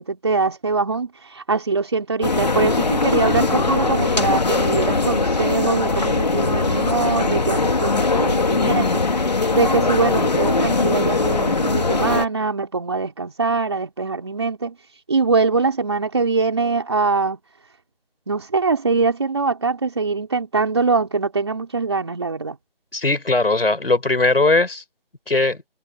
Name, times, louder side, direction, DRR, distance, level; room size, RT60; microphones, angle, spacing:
voice 1, 0.0-9.0 9.5-14.8 15.1-17.4 18.3-22.6, right 4 dB, 25° right, 3.8 m, -22 dB
sound 1, 2.2-12.3, left 3 dB, 45° left, 3.2 m, -20 dB
voice 2, 22.9-24.8 25.3-25.6, left 2 dB, 70° left, 7.6 m, -19 dB
figure-of-eight pair, 180°, 30 cm